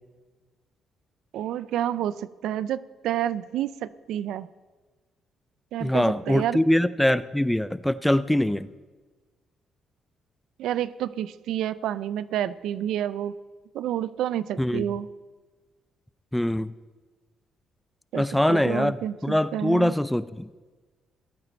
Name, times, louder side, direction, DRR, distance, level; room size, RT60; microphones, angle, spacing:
voice 1, 1.3-4.5 5.7-6.6 10.6-13.3 13.7-15.1 18.1-19.9, right 11 dB, 85° right, 16 dB, 0.4 m, -29 dB
voice 2, 5.8-8.7 14.6-14.9 16.3-16.7 18.1-19.0 19.2-20.5, left 1 dB, 5° left, 16 dB, 0.4 m, -23 dB
18.0 x 8.9 x 4.4 m, 1.3 s
cardioid pair, 90°, 0 cm